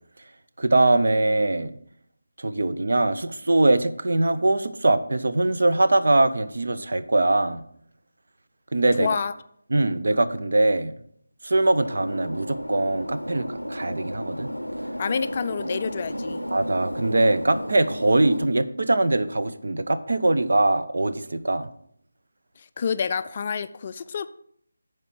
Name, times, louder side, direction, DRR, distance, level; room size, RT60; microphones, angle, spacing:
voice 1, 0.6-1.7 2.4-7.6 8.7-9.2 9.7-11.0 11.4-14.5 16.5-21.7, right 2 dB, 55° right, 10 dB, 0.6 m, -22 dB
voice 2, 9.0-9.3 15.0-16.4 22.6-24.3, left 6 dB, 30° left, 11 dB, 0.3 m, -28 dB
sound 1, 11.9-18.5, equal, 85° left, 0.5 m, -33 dB
10.5 x 4.7 x 5.9 m, 0.67 s
figure-of-eight pair, 155°, 0 cm